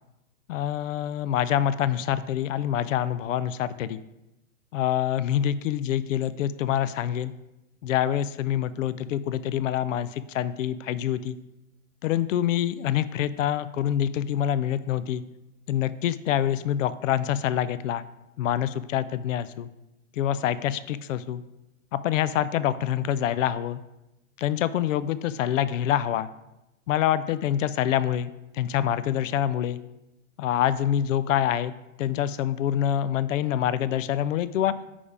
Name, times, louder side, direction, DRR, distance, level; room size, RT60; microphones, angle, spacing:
voice 1, 0.5-4.0 4.7-7.3 7.8-11.4 12.0-15.2 15.7-18.1 18.4-19.7 20.1-21.4 21.9-23.8 24.4-26.3 26.9-29.8 30.4-31.7 32.0-34.7, left 10 dB, 65° left, 15 dB, 0.5 m, -26 dB
5.2 x 5.1 x 4.8 m, 0.93 s
hypercardioid pair, 135°, 41 cm